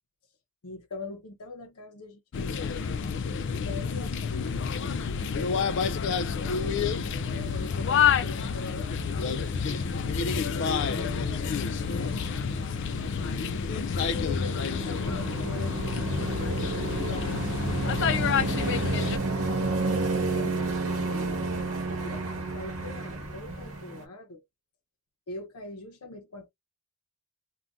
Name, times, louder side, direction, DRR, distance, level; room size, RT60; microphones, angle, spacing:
voice 1, 0.6-2.8 3.5-6.0 6.3-11.6 11.9-12.4 13.2-13.4 14.0-16.1 17.0-24.4 25.3-26.5, left 2 dB, 85° left, 0.7 m, -43 dB
sound 1, 2.3-19.2, left 6 dB, 55° left, 0.3 m, -29 dB
sound 2, 4.5-4.9 5.1-5.5 5.9-6.0 8.1-8.2 8.4-12.5 12.9-24.1, right 3 dB, 70° right, 1.0 m, -32 dB
sound 3, 7.0-23.8, right 2 dB, 30° right, 1.0 m, -45 dB
2.6 x 2.2 x 3.4 m
head